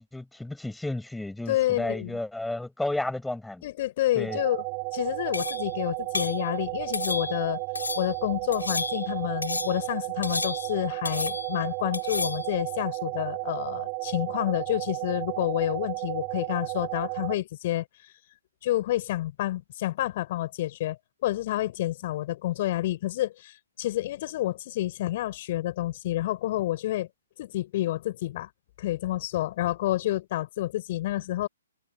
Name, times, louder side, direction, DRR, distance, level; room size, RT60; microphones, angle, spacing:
voice 1, 0.0-3.7 4.1-4.4, left 2 dB, 5° left, 5.8 m, -32 dB
voice 2, 1.5-2.2 3.6-4.6 4.9-7.6 7.9-17.8 18.6-27.1 27.4-28.5 28.8-31.5, left 15 dB, 40° left, 4.8 m, -29 dB
sound 1, 4.3-17.4, right 40 dB or more, 30° right, 1.7 m, -33 dB
sound 2, 5.3-5.7 6.1-6.4 6.9-7.5 7.8-8.1 8.5-9.1 9.4-9.9 10.2-10.8 11.1-11.6 11.9-12.5, left 3 dB, 70° left, 4.5 m, -32 dB
figure-of-eight pair, 125°, 0 cm